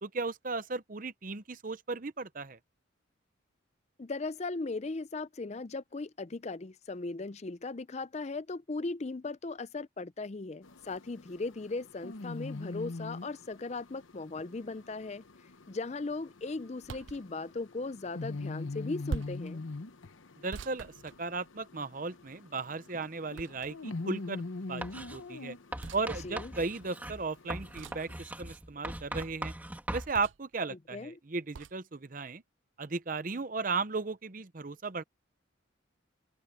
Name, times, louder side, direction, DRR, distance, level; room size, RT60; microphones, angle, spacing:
voice 1, 0.0-2.6 20.4-25.6 25.9-29.5 29.9-32.4 32.8-35.0, right 4 dB, 40° right, 0.8 m, -36 dB
voice 2, 4.0-15.2 15.7-19.6 26.2-26.5 30.7-31.2, left 3 dB, 35° left, 0.5 m, -38 dB
sound 1, 10.6-28.2, left 3 dB, 80° left, 0.9 m, -44 dB
sound 2, 16.8-17.2 19.1-19.5 20.5-21.7 23.3-23.9 25.8-26.1 27.7-28.1 30.1-30.5 31.5-31.8, right 5 dB, 70° right, 0.5 m, -42 dB
Writing, 24.8-25.2 25.7-30.1, right 1 dB, 10° right, 2.1 m, -40 dB
open air
head